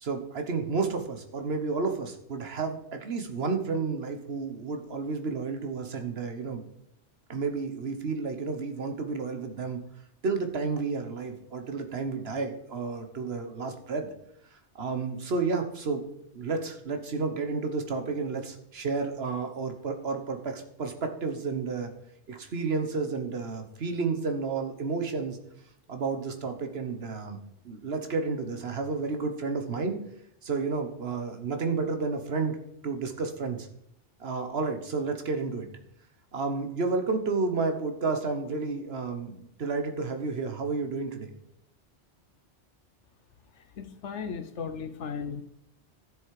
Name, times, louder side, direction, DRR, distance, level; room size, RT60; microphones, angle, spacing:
voice 1, 0.0-6.6 7.3-9.8 10.2-14.1 14.7-16.0 16.3-21.9 22.3-25.4 25.9-27.4 27.6-30.0 30.4-32.6 32.8-33.7 34.2-35.7 36.3-41.3, right 4 dB, 60° right, 6 dB, 1.4 m, -31 dB
voice 2, 43.8-45.4, left 6 dB, 80° left, 7 dB, 1.2 m, -36 dB
12.5 x 7.1 x 4.8 m, 0.75 s
omnidirectional pair, 1.2 m